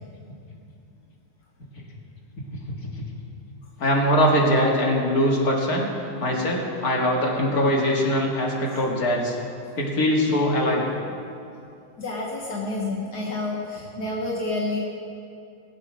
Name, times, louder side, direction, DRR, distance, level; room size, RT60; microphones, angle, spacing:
voice 1, 3.8-5.9 6.2-9.3 9.8-10.8, equal, 35° left, -1 dB, 1.9 m, -22 dB
voice 2, 12.0-14.8, left 2 dB, 50° left, -2 dB, 1.2 m, -29 dB
20.5 x 8.0 x 6.2 m, 2.5 s
omnidirectional pair, 3.6 m